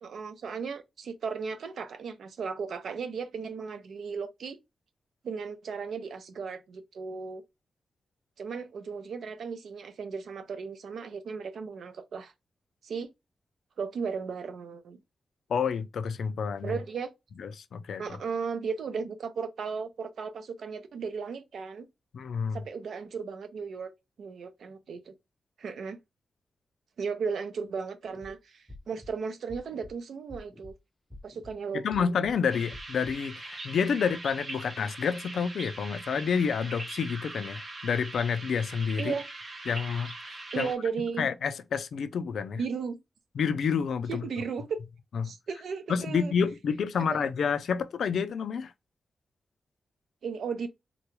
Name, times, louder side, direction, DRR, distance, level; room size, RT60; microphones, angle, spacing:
voice 1, 0.0-4.6 5.2-7.4 8.4-12.3 12.8-13.1 13.8-15.0 16.6-17.1 18.0-21.9 22.5-23.9 24.2-25.1 25.6-26.0 27.0-30.7 31.2-32.1 39.0-39.3 40.5-41.3 42.6-43.0 44.1-44.8 45.2-46.3 47.1-47.2 50.2-50.7, right 5 dB, 80° right, 0.6 m, -35 dB
voice 2, 15.5-16.8 17.4-18.0 22.1-22.6 31.7-39.1 39.7-40.7 41.2-42.6 43.4-44.2 45.1-45.3 45.9-48.7, left 6 dB, 80° left, 0.4 m, -29 dB
sound 1, 28.1-28.3 28.7-29.1 29.5-29.9 30.3-30.7 31.1-31.5 31.9-32.3 32.7-33.1, left 1 dB, 5° left, 0.6 m, -47 dB
sound 2, 32.5-40.8, right 2 dB, 40° right, 0.9 m, -41 dB
3.7 x 2.2 x 3.0 m
wide cardioid pair, 130°, 0 cm